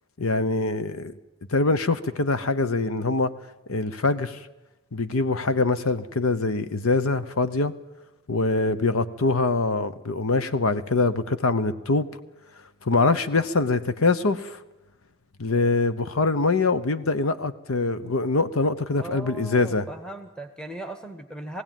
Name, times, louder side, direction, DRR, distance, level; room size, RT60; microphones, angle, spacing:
voice 1, 0.2-1.1 1.5-3.3 3.7-4.4 4.9-7.7 8.3-12.1 12.8-14.6 15.4-19.9, left 3 dB, 75° left, 12 dB, 0.9 m, -24 dB
voice 2, 19.0-21.6, right 2 dB, 5° left, 6 dB, 1.0 m, -38 dB
20.5 x 16.0 x 9.1 m, 1.1 s
head